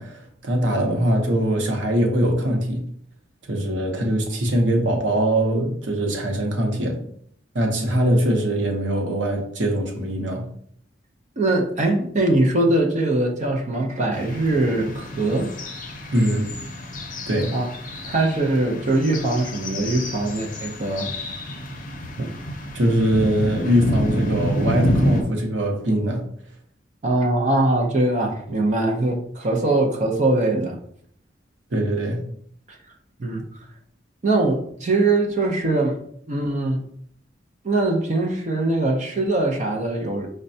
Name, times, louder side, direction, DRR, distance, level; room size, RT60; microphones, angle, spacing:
voice 1, 0.0-2.8 3.5-7.0 7.5-10.5 16.1-16.5 17.3-17.5 22.7-26.3 31.7-32.3, equal, 80° right, 2 dB, 0.8 m, -22 dB
voice 2, 11.4-15.5 17.5-17.7 18.0-21.1 22.2-22.3 27.0-30.8 32.7-32.8 33.2-33.4 34.2-36.0 36.3-36.8 37.6-40.3, right 2 dB, 40° right, 1 dB, 0.5 m, -22 dB
sound 1, 14.1-25.2, equal, 45° left, 0.6 m, -29 dB
5.1 x 2.1 x 2.6 m, 0.63 s
head